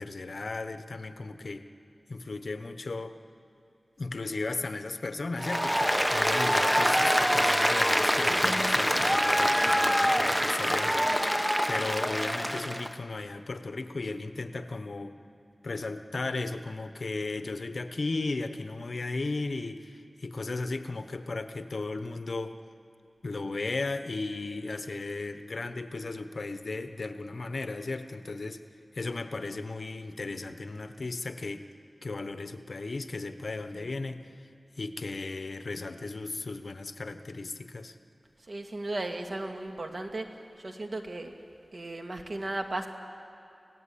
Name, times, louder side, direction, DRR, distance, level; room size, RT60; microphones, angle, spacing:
voice 1, 0.0-1.7 2.1-3.2 4.0-11.2 11.7-15.2 15.6-22.6 23.2-28.6 28.9-31.7 32.0-34.2 34.8-37.9, left 3 dB, 65° left, 9 dB, 1.0 m, -35 dB
Applause, 5.4-12.9, equal, 5° right, 0.9 m, -25 dB
voice 2, 6.9-7.2 10.7-10.9 33.7-33.9 38.5-40.3 40.6-41.3 41.7-42.9, right 2 dB, 60° right, 4 dB, 2.0 m, -36 dB
26.5 x 17.5 x 8.5 m, 2.7 s
wide cardioid pair, 60°, 0 cm